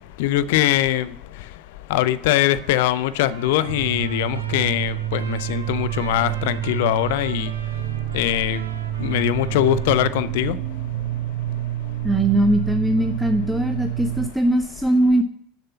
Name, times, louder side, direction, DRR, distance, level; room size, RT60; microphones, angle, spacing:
voice 1, 0.2-1.1 1.9-7.5 8.1-8.6 9.0-10.6, left 13 dB, 60° left, 16 dB, 0.5 m, -21 dB
Trumpet, 2.2-10.2, right 4 dB, 80° right, 0.9 m, -42 dB
sound 1, 3.7-14.3, right 14 dB, 60° right, 0.5 m, -28 dB
voice 2, 12.0-15.2, right 1 dB, 5° right, 5 dB, 0.7 m, -20 dB
7.1 x 6.7 x 6.8 m, 0.67 s
figure-of-eight pair, 75°, 0 cm